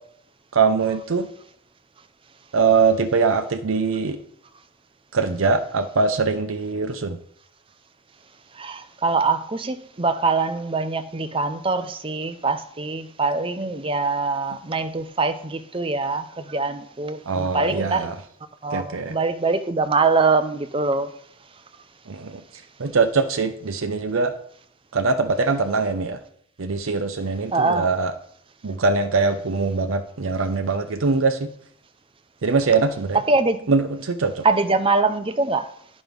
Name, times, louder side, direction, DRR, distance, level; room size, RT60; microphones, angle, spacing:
voice 1, 0.5-1.3 2.5-4.2 5.1-7.2 17.3-18.2 18.7-19.2 22.1-22.4 22.8-24.3 24.9-26.2 26.6-28.1 28.6-31.5 32.4-33.2 33.7-34.4, right 4 dB, 75° right, 0.7 m, -22 dB
voice 2, 8.5-18.1 18.6-21.1 27.5-27.9 33.3-33.7 34.4-35.7, right 3 dB, 25° right, 0.6 m, -23 dB
9.7 x 6.2 x 5.2 m
head